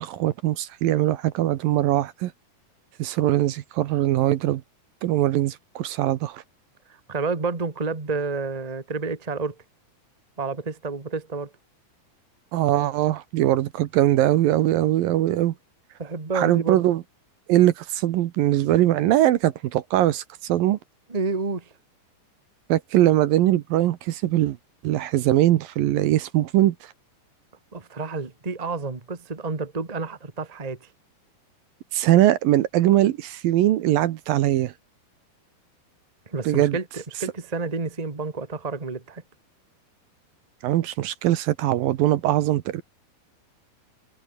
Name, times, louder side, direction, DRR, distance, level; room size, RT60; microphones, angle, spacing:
voice 1, 0.0-2.3 3.0-4.6 5.0-6.4 12.5-15.5 16.3-17.0 17.5-20.8 22.7-24.6 24.8-26.9 31.9-34.7 36.5-36.8 40.6-42.8, right 14 dB, 70° right, 2.5 m, -21 dB
voice 2, 6.9-9.6 10.4-11.5 16.0-16.8 21.1-21.7 27.7-30.9 36.3-39.2, right 4 dB, 25° right, 0.7 m, -30 dB
omnidirectional pair, 4.7 m